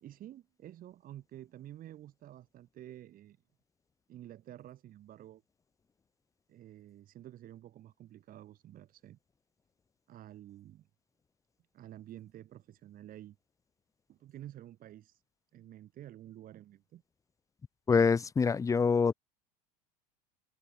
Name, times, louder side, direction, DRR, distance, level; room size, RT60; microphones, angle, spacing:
voice 1, 0.0-3.4 4.1-5.4 6.5-9.2 10.1-10.9 11.7-13.4 14.1-15.2 15.5-17.0, right 12 dB, 45° right, 2.1 m, -50 dB
voice 2, 17.9-19.1, left 5 dB, 15° left, 0.5 m, -25 dB
hypercardioid pair, 95°, 20 cm